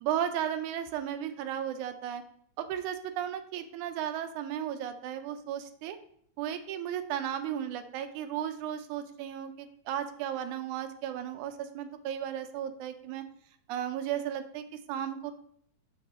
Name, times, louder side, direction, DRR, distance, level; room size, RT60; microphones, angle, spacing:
voice 1, 0.0-2.2 2.6-6.0 6.4-13.2 13.7-15.3, right 10 dB, 80° right, 8 dB, 2.0 m, -35 dB
5.7 x 5.7 x 4.1 m, 0.65 s
omnidirectional pair, 3.5 m